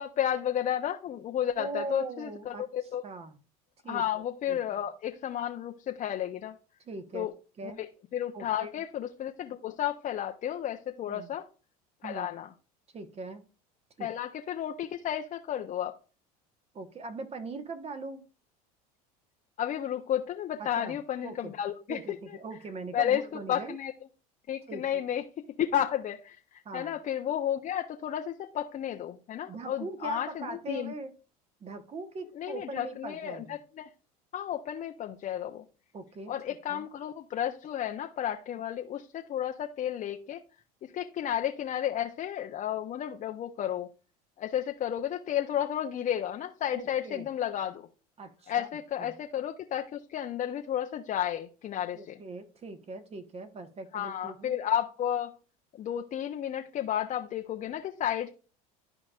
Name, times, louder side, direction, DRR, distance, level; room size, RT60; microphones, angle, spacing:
voice 1, 0.0-3.0 3.9-6.6 7.1-7.3 7.6-11.5 12.0-12.5 14.0-16.0 19.6-22.4 22.9-23.2 23.5-23.9 24.5-25.2 25.6-30.9 32.3-33.9 34.3-35.6 36.3-40.4 40.8-43.9 44.4-47.9 48.5-52.2 53.9-55.4 55.8-58.3, left 10 dB, 40° left, 4 dB, 0.7 m, -32 dB
voice 2, 1.6-2.7 3.0-3.4 3.8-4.0 4.5-4.8 6.8-7.3 7.6-7.8 8.3-8.7 11.1-11.3 12.0-12.3 12.9-13.4 14.0-14.1 16.7-18.2 20.6-21.0 21.2-21.5 21.9-23.8 24.7-25.1 26.6-26.9 29.5-31.1 31.6-33.6 35.9-36.3 36.7-36.9 46.7-47.3 48.2-48.7 49.0-49.1 51.9-54.5, right 3 dB, 30° right, 8 dB, 1.3 m, -41 dB
12.5 x 4.9 x 2.4 m, 0.37 s
hypercardioid pair, 85°, 19 cm